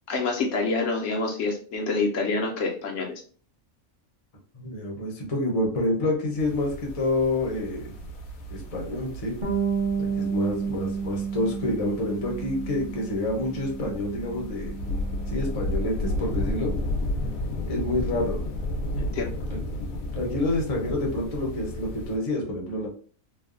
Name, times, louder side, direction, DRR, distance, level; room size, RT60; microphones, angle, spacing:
voice 1, 0.1-3.2 19.0-19.3, left 3 dB, 70° left, 0 dB, 1.0 m, -27 dB
voice 2, 4.5-7.9 8.5-9.3 10.0-14.7 15.3-16.7 17.7-18.4 19.5-22.9, left 1 dB, 35° left, 0 dB, 0.6 m, -28 dB
sound 1, 6.4-22.2, left 1 dB, 90° left, 1.1 m, -33 dB
Bass guitar, 9.4-15.7, right 6 dB, 40° right, 1.1 m, -31 dB
3.1 x 2.2 x 2.4 m, 0.42 s
omnidirectional pair, 1.4 m